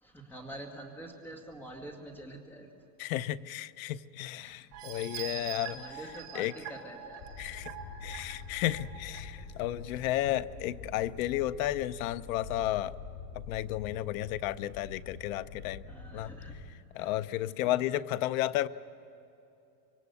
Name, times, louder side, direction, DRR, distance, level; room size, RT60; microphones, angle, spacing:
voice 1, 0.0-2.7 4.4-4.6 5.4-7.2 8.1-8.3 15.9-16.6 17.0-17.1 17.6-17.7, right 1 dB, 5° left, 2 dB, 1.9 m, -47 dB
voice 2, 3.0-5.8 6.3-6.5 7.4-7.7 8.0-12.9 13.5-15.8 16.1-16.3 16.9-18.7, left 14 dB, 55° left, 15 dB, 0.7 m, -33 dB
sound 1, 4.7-9.2 9.7-9.8 10.2-10.3, right 9 dB, 30° right, 3.3 m, -43 dB
sound 2, 7.2-16.7, left 4 dB, 70° left, 6.2 m, -46 dB
26.0 x 23.0 x 8.2 m, 2.7 s
supercardioid pair, 175°, 50 cm